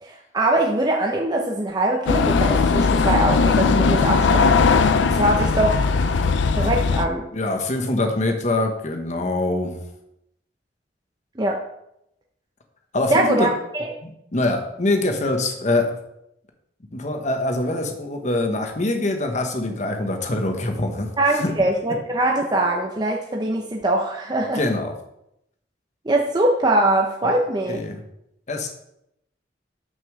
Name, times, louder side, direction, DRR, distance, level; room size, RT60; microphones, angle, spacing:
voice 1, 0.0-4.7 5.1-5.8 6.6-7.3 11.4-11.6 13.1-13.5 13.7-13.9 21.2-24.6 26.1-27.8, right 1 dB, 20° right, 0 dB, 0.7 m, -22 dB
sound 1, 2.1-7.1, left 4 dB, 75° left, 0.5 m, -19 dB
voice 2, 7.3-9.8 12.9-13.5 14.0-16.0 16.9-21.5 24.5-24.9 27.2-27.4 27.7-28.0 28.5-28.7, left 2 dB, 40° left, 4 dB, 1.0 m, -24 dB
6.3 x 5.4 x 6.4 m, 0.80 s
head